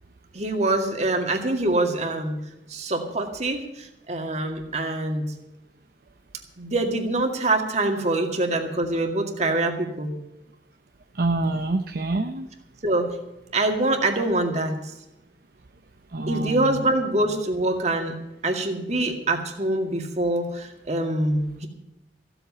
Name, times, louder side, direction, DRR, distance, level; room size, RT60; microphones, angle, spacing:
voice 1, 0.3-2.4 2.7-5.3 6.6-10.1 12.8-13.1 13.5-14.8 16.3-18.1 18.4-21.7, right 2 dB, 40° right, 3 dB, 2.1 m, -24 dB
voice 2, 11.2-12.5 16.1-16.8, right 2 dB, 55° right, 6 dB, 0.8 m, -26 dB
15.5 x 8.0 x 8.4 m, 0.92 s
head